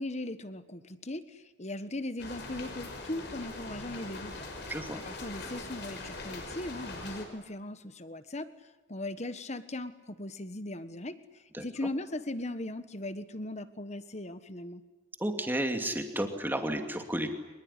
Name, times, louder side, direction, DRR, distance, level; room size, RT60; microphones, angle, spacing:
voice 1, 0.0-4.5 4.9-8.5 8.9-11.1 11.6-14.8, left 1 dB, 35° left, 11 dB, 1.4 m, -38 dB
sound 1, 2.2-7.2, left 2 dB, 60° left, 5.7 m, -42 dB
voice 2, 4.7-5.0 11.5-11.6 15.2-17.3, right 1 dB, 10° right, 4 dB, 2.5 m, -32 dB
24.5 x 21.5 x 10.0 m, 1.1 s
head